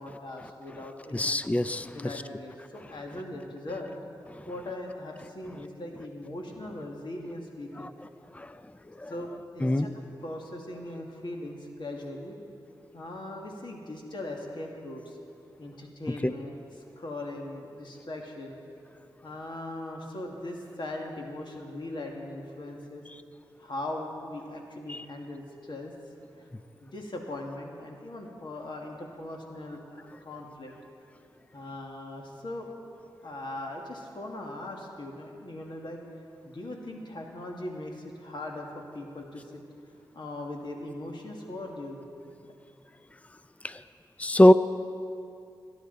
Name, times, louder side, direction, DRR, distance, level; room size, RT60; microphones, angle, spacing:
voice 1, 0.0-1.4 1.9-4.0 4.5-7.9 9.1-9.9 10.2-12.4 12.9-15.2 15.6-18.6 19.2-23.0 23.6-25.9 26.4-26.5 26.8-30.7 31.5-32.7 33.2-36.0 36.4-39.6 40.1-42.5, left 1 dB, 60° left, 0 dB, 2.1 m, -39 dB
voice 2, 1.1-1.9 7.8-7.9 8.4-8.5 9.0-9.1 9.6-9.9 16.2-16.3 24.9-25.0 43.6-43.8 44.2-44.5, left 1 dB, 15° left, 13 dB, 0.5 m, -21 dB
24.0 x 10.0 x 4.0 m, 2.6 s
cardioid pair, 40°, 9 cm